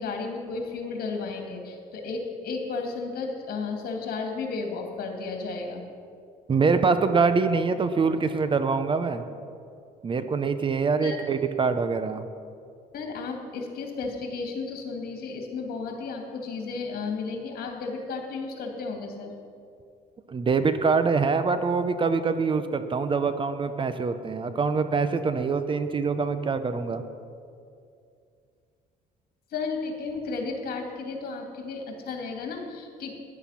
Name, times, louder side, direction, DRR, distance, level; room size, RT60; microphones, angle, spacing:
voice 1, 0.0-5.8 11.0-11.2 12.9-19.3 29.5-33.1, left 4 dB, 60° left, 2 dB, 2.5 m, -33 dB
voice 2, 6.5-9.2 10.0-12.2 20.3-27.0, right 4 dB, 30° right, 10 dB, 0.7 m, -24 dB
13.5 x 10.5 x 5.8 m, 2.4 s
cardioid pair, 110°, 17 cm